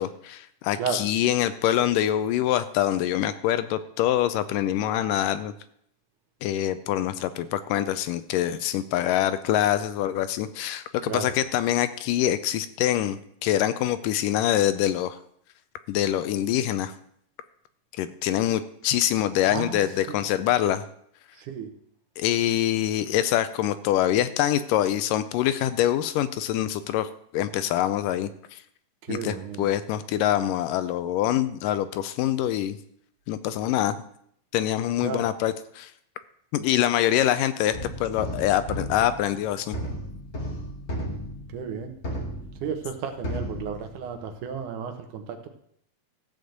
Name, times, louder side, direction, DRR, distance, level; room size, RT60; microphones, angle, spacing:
voice 1, 0.0-5.5 6.4-15.2 15.9-16.9 18.0-20.8 22.2-28.6 29.1-32.8 33.3-34.0 34.5-35.9 36.5-39.8, left 12 dB, 80° left, 13 dB, 2.1 m, -25 dB
voice 2, 19.5-19.8 20.1-20.2 21.4-21.7 29.1-29.7 35.0-35.3 41.5-42.0 42.6-45.5, right 6 dB, 70° right, 7 dB, 2.4 m, -33 dB
sound 1, 37.7-43.0 43.2-44.3, equal, 45° left, 0.9 m, -34 dB
14.5 x 5.2 x 7.9 m, 0.70 s
omnidirectional pair, 4.0 m